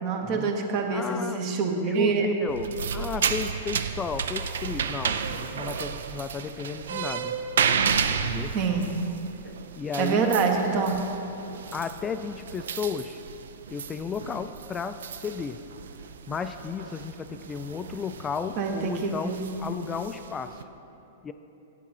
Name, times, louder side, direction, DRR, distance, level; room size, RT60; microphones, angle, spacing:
voice 1, 0.0-2.3 8.5-8.9 10.0-10.9 18.6-19.4, right 5 dB, 45° right, 3 dB, 1.0 m, -25 dB
voice 2, 0.9-1.5 1.9-7.4 8.2-8.6 9.7-10.3 11.7-13.2 13.7-15.6 16.3-20.6 21.2-21.3, left 6 dB, 20° left, 10 dB, 0.3 m, -34 dB
sound 1, 2.5-20.6, right 6 dB, 75° right, 0.4 m, -32 dB
7.9 x 7.3 x 4.2 m, 2.9 s
hypercardioid pair, 115°, 0 cm